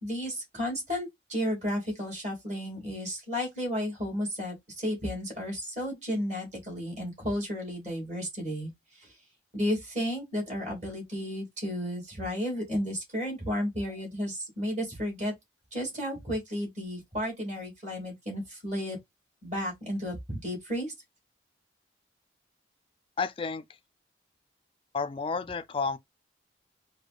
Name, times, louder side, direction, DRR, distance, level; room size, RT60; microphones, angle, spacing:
voice 1, 0.0-9.1 9.5-15.3 15.7-19.0 19.4-20.9, equal, 40° right, 2.4 m, -33 dB
voice 2, 23.2-23.6 24.9-26.0, left 4 dB, 30° left, 0.3 m, -31 dB
4.7 x 2.2 x 2.5 m
head